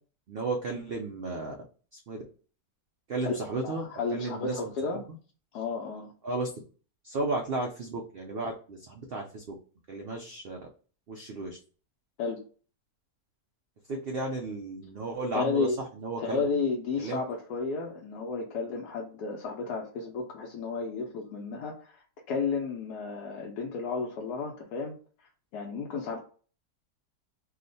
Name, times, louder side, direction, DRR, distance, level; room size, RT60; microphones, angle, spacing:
voice 1, 0.3-1.5 1.9-2.2 3.1-4.6 6.2-6.5 7.0-9.4 9.9-10.6 11.1-11.6 13.9-15.7 16.0-16.4 17.0-17.2, right 3 dB, 75° right, 1 dB, 0.5 m, -33 dB
voice 2, 3.6-5.0 5.5-6.1 12.2-12.4 15.3-15.8 16.2-22.0 22.3-25.0 25.5-26.2, left 4 dB, 85° left, -1 dB, 1.2 m, -32 dB
3.0 x 2.1 x 3.9 m, 0.39 s
omnidirectional pair, 1.7 m